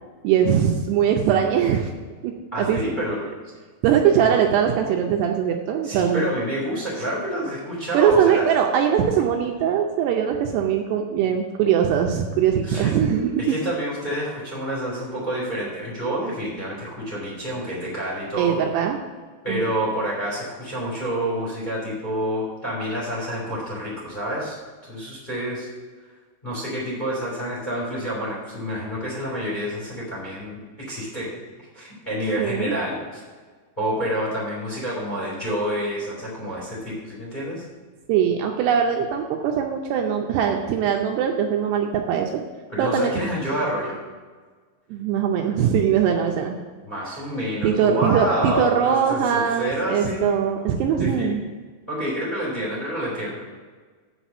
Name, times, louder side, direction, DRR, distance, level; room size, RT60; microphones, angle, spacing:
voice 1, 0.2-1.9 2.2-2.3 2.6-2.8 3.8-6.3 7.9-13.6 18.4-19.0 19.5-19.7 32.4-32.8 38.1-42.4 42.8-43.1 44.9-46.6 47.6-51.4, right 8 dB, 80° right, 2 dB, 2.6 m, -21 dB
voice 2, 2.5-3.2 4.2-4.3 5.8-8.5 12.6-12.9 13.4-18.6 19.4-25.7 26.4-31.3 31.7-33.2 33.8-37.6 42.7-44.0 46.8-50.4 51.0-51.4 51.9-53.4, equal, 15° left, -5 dB, 2.3 m, -28 dB
7.8 x 5.8 x 7.1 m, 1.4 s
omnidirectional pair, 5.1 m